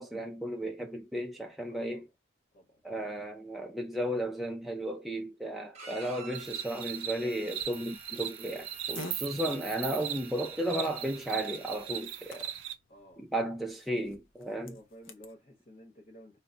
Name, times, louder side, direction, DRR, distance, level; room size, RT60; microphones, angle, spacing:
voice 1, 0.0-2.1 2.8-12.5 13.2-14.8, right 1 dB, ahead, 0.3 m, -34 dB
voice 2, 1.7-2.1 2.5-2.8 12.9-13.2 14.6-16.4, equal, 40° left, 0.9 m, -53 dB
Bowed string instrument, 5.7-12.0, right 3 dB, 35° right, 0.7 m, -51 dB
sound 1, 6.3-12.7, right 10 dB, 75° right, 0.4 m, -39 dB
Fart, 7.6-15.3, left 2 dB, 75° left, 0.5 m, -51 dB
2.1 x 2.1 x 3.7 m
head